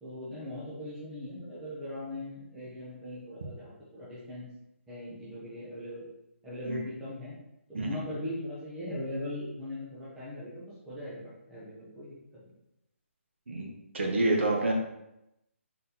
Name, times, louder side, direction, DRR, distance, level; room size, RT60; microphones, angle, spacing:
voice 1, 0.0-4.5 4.9-6.1 6.4-7.3 7.7-11.2 11.5-12.1 12.4-12.5, left 1 dB, 5° right, -10 dB, 0.5 m, -39 dB
voice 2, 13.5-14.7, right 2 dB, 55° right, 1 dB, 1.0 m, -28 dB
3.9 x 3.9 x 2.8 m, 0.86 s
hypercardioid pair, 180°, 7 cm